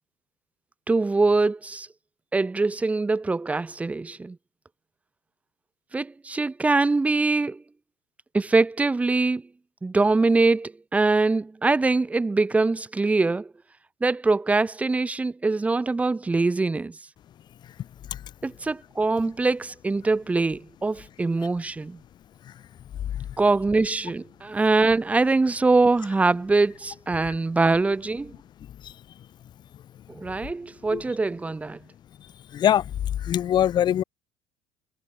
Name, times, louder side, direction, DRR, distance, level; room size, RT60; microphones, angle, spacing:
voice 1, 0.9-1.9 2.3-4.4 5.9-7.6 8.3-9.4 9.8-13.5 14.0-17.0 18.4-22.0 23.4-28.3 30.1-31.8, right 3 dB, 10° right, 7.8 m, -23 dB
voice 2, 32.5-32.8 33.2-34.0, left 10 dB, 35° left, 3.3 m, -22 dB
cardioid pair, 165°, 14 cm